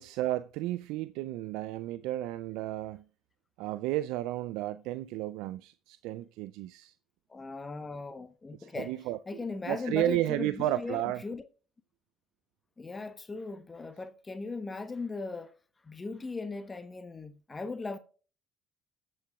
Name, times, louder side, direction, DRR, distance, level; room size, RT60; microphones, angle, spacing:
voice 1, 0.0-3.0 3.6-6.9 8.6-9.2 9.7-11.2, right 15 dB, 75° right, 0.3 m, -32 dB
voice 2, 7.3-8.9 9.3-11.4 12.8-15.5 15.8-18.0, left 3 dB, 25° left, 1.0 m, -38 dB
19.0 x 7.6 x 2.3 m
hypercardioid pair, 65°, 0 cm